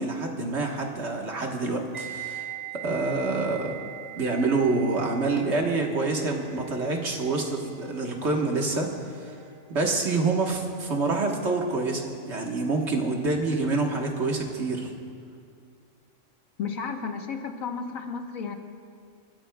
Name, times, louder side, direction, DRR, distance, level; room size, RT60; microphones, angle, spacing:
voice 1, 0.0-2.5 2.8-3.7 4.1-9.4 9.7-14.9, right 3 dB, 55° right, 1 dB, 1.6 m, -27 dB
sound 1, 1.9-10.9 11.2-11.5, right 11 dB, 15° right, 2.9 m, -42 dB
voice 2, 16.6-18.6, left 5 dB, 85° left, 4 dB, 1.5 m, -33 dB
29.5 x 14.0 x 2.3 m, 2.3 s
omnidirectional pair, 1.4 m